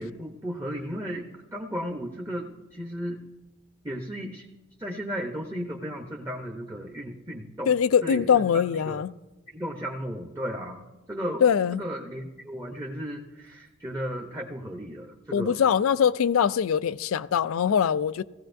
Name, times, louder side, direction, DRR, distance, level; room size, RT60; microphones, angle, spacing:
voice 1, 0.0-3.2 3.8-4.5 4.8-7.7 8.0-9.0 9.5-11.4 11.7-15.6, equal, 15° right, 0.7 m, -35 dB
voice 2, 7.7-9.1 11.4-11.8 15.3-18.2, left 7 dB, 75° left, 0.4 m, -22 dB
16.5 x 15.0 x 2.6 m
head